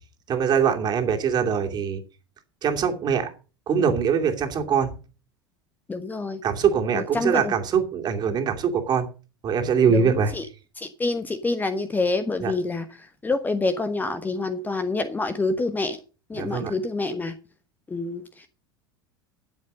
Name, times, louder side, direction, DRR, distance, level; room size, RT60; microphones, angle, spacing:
voice 1, 0.3-2.0 2.6-3.3 3.7-4.9 6.4-9.1 9.4-10.3 12.4-12.5 16.3-16.7, right 7 dB, 35° right, 2.7 m, -23 dB
voice 2, 5.9-6.4 6.9-7.5 9.9-10.5 10.8-16.0 16.3-17.3 17.9-18.5, left 3 dB, 15° left, 1.1 m, -27 dB
12.5 x 7.9 x 6.4 m
figure-of-eight pair, 80°, 13 cm